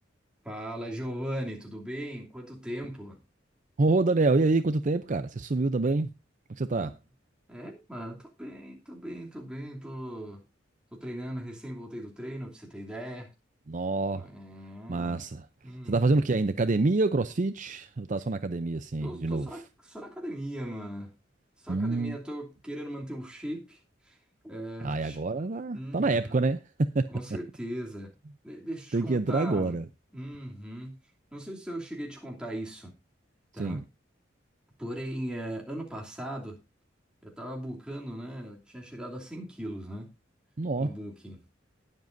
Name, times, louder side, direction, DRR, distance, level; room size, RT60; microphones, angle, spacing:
voice 1, 0.4-3.2 6.7-6.9 7.5-10.4 10.9-13.3 14.1-15.2 15.6-16.3 19.0-21.1 21.6-24.2 24.4-25.2 25.7-26.5 27.1-28.1 28.4-29.8 30.1-31.0 31.3-33.0 33.5-33.8 34.8-36.6 37.2-40.1 40.8-41.4, equal, 5° right, 2.9 m, -39 dB
voice 2, 3.8-6.1 6.5-6.9 13.7-14.3 14.9-15.4 15.9-19.5 21.7-22.2 24.8-27.1 28.9-29.9 33.6-33.8 40.6-40.9, right 3 dB, 40° right, 0.5 m, -26 dB
20.0 x 7.5 x 2.7 m
head